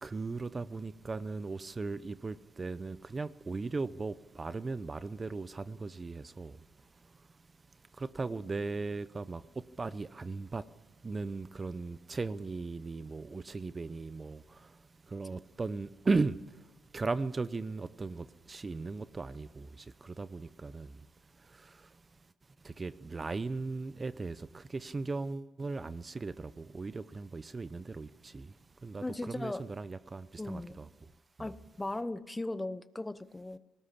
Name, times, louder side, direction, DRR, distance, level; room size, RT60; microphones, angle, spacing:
voice 1, 0.0-7.3 7.7-22.0 22.6-31.1, right 3 dB, 30° right, 0.7 m, -38 dB
voice 2, 29.0-29.6 30.4-30.8 31.4-33.6, left 2 dB, 15° left, 0.9 m, -38 dB
19.5 x 18.5 x 8.4 m
cardioid pair, 90°, 0 cm